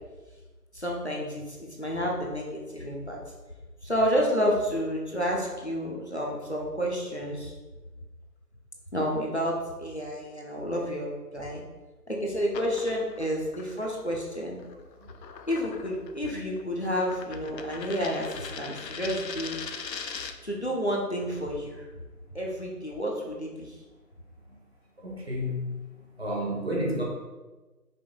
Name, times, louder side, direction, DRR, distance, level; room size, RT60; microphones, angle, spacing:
voice 1, 0.7-3.2 3.8-7.5 8.9-11.6 12.1-14.6 15.5-19.6 20.4-21.9 22.3-23.8, equal, 45° left, -1 dB, 0.6 m, -30 dB
sound 1, 12.5-20.5, left 6 dB, 85° left, 0.6 m, -41 dB
voice 2, 25.0-25.7 26.2-27.0, equal, 40° right, -3 dB, 0.8 m, -30 dB
5.1 x 2.4 x 3.6 m, 1.2 s
figure-of-eight pair, 170°, 49 cm